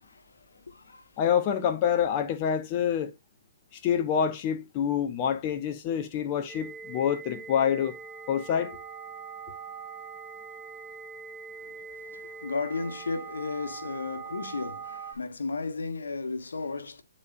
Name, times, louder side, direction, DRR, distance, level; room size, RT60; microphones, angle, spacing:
voice 1, 0.0-1.1 11.6-17.0, left 4 dB, 80° left, 1.3 m, -35 dB
voice 2, 1.2-3.1 3.7-7.9 8.3-8.8, left 8 dB, 30° left, 0.8 m, -27 dB
sound 1, 6.5-15.1, right 5 dB, 5° right, 1.4 m, -42 dB
8.7 x 4.3 x 2.5 m
hypercardioid pair, 140°, 0 cm